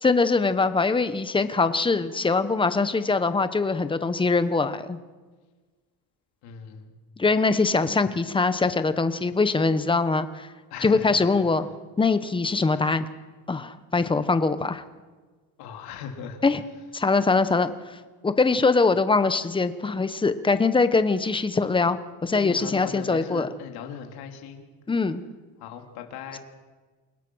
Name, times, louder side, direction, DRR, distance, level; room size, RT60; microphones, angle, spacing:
voice 1, 0.0-5.0 7.2-10.5 10.8-11.7 12.0-13.1 13.5-14.8 16.4-16.6 16.9-23.5 24.9-25.2, left 4 dB, 15° left, 11 dB, 1.1 m, -23 dB
voice 2, 6.4-6.9 10.7-11.3 12.8-12.9 15.6-16.4 22.3-24.7 25.6-26.4, left 7 dB, 75° left, 4 dB, 3.4 m, -38 dB
28.5 x 17.5 x 6.4 m, 1.4 s
cardioid pair, 140°, 38 cm